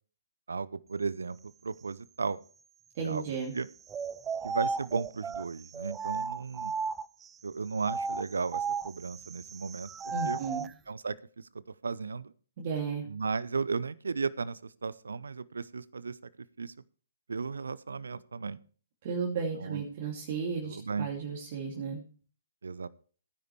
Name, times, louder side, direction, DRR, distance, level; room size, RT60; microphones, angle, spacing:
voice 1, 0.5-2.4 3.0-3.7 4.4-6.7 7.4-10.4 10.9-12.3 13.1-16.7 17.3-18.6 19.5-19.8 20.6-21.1 22.6-22.9, right 4 dB, 70° right, 19 dB, 0.6 m, -35 dB
voice 2, 2.9-3.5 10.1-10.7 12.6-13.0 19.0-22.0, right 5 dB, 45° right, -1 dB, 2.6 m, -34 dB
sound 1, 3.9-7.3 7.8-10.7, right 5 dB, 15° right, 0.5 m, -35 dB
16.5 x 10.0 x 3.3 m, 0.42 s
figure-of-eight pair, 130°, 0 cm